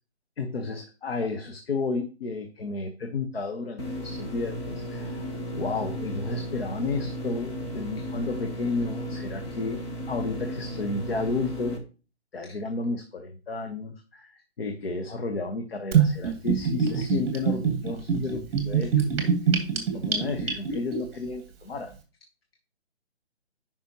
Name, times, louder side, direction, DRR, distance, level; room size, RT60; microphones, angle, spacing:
voice 1, 0.4-9.8 10.1-11.8 12.3-18.9 19.4-19.6 19.9-21.9, left 3 dB, 60° left, 4 dB, 1.2 m, -32 dB
sound 1, 3.8-11.8, equal, 25° left, 1.1 m, -35 dB
Gurgling / Bathtub (filling or washing), 15.9-21.0, right 7 dB, 25° right, 1.9 m, -24 dB
10.5 x 5.4 x 3.0 m, 0.34 s
figure-of-eight pair, 155°, 33 cm